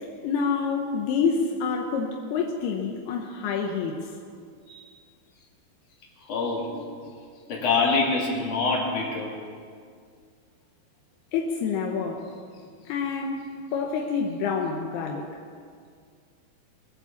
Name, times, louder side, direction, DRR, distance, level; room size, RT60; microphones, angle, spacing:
voice 1, 0.2-4.0 11.3-12.3 12.9-13.4 13.7-15.3, left 5 dB, 80° left, 1 dB, 3.1 m, -27 dB
voice 2, 6.3-7.0 7.5-9.3, left 4 dB, 50° left, -3 dB, 4.1 m, -25 dB
24.0 x 8.3 x 7.3 m, 2.1 s
omnidirectional pair, 4.5 m